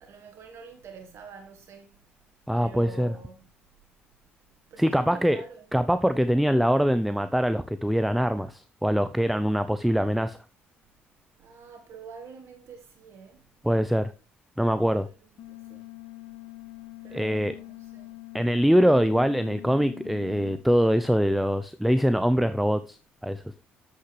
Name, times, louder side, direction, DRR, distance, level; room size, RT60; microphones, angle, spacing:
voice 1, 0.0-1.9 2.6-3.5 4.7-5.7 11.4-13.5 14.9-15.2 15.5-15.9 17.0-18.2, right 5 dB, 60° right, 1.4 m, -47 dB
voice 2, 2.5-3.1 4.8-5.4 5.7-10.4 13.6-14.1 14.6-15.1 17.1-17.6 18.3-23.4, equal, ahead, 0.5 m, -23 dB
sound 1, 15.4-20.6, left 19 dB, 70° left, 1.5 m, -44 dB
8.7 x 7.7 x 3.2 m
supercardioid pair, 65°, 5 cm